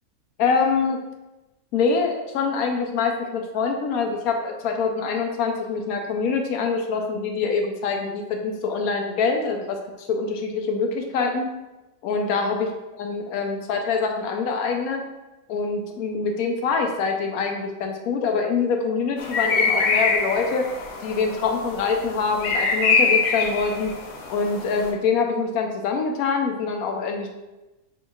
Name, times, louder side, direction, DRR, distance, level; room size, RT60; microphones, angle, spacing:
voice 1, 0.4-1.0 1.7-11.5 12.0-12.7 13.0-15.0 15.5-20.6 21.0-23.9 24.3-27.3, left 5 dB, 90° left, 3 dB, 1.1 m, -25 dB
sound 1, 19.2-24.9, left 4 dB, 65° left, 0.9 m, -24 dB
4.6 x 3.4 x 2.3 m, 1.0 s
omnidirectional pair, 1.5 m